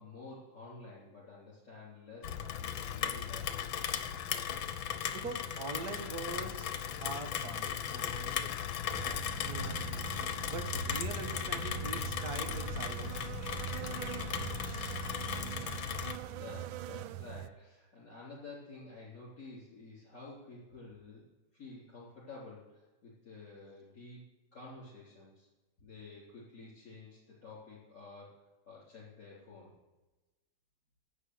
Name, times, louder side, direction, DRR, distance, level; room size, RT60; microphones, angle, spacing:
voice 1, 0.0-3.6 16.0-21.2 21.5-24.2 24.5-25.5 25.8-29.7, left 3 dB, 45° left, -8 dB, 4.1 m, -51 dB
Rain, 2.2-16.2, left 9 dB, 75° left, 1.6 m, -37 dB
voice 2, 5.1-8.5 9.5-10.0 10.5-13.1, right 3 dB, 50° right, 5 dB, 1.9 m, -43 dB
sound 1, 8.9-17.5, right 14 dB, 80° right, 1.3 m, -42 dB
11.5 x 8.1 x 8.0 m, 1.1 s
omnidirectional pair, 2.2 m